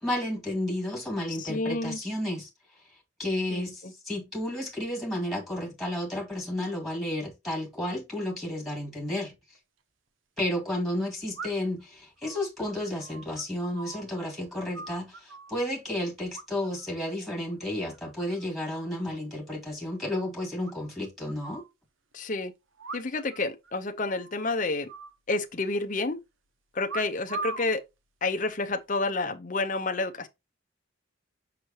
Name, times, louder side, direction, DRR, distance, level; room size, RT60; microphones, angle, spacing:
voice 1, 0.0-2.5 3.2-9.3 10.4-21.6, left 1 dB, ahead, 2.0 m, -32 dB
voice 2, 1.4-2.0 3.5-3.9 22.1-22.5 22.9-24.9 25.3-26.2 26.7-27.8 28.2-30.3, left 3 dB, 40° left, 0.8 m, -29 dB
sound 1, 9.6-9.7 11.4-11.8 12.2-14.3 14.5-15.6 16.3-16.9 17.2-17.5 17.9-18.5 18.8-18.9 19.1-19.2 19.5-19.6 19.9-20.0 20.7-21.7 22.8-23.4 23.6-23.7 24.1-24.4 24.9-25.8 26.9-27.7 28.5-28.8, right 4 dB, 80° right, 0.8 m, -41 dB
6.4 x 5.8 x 2.9 m
head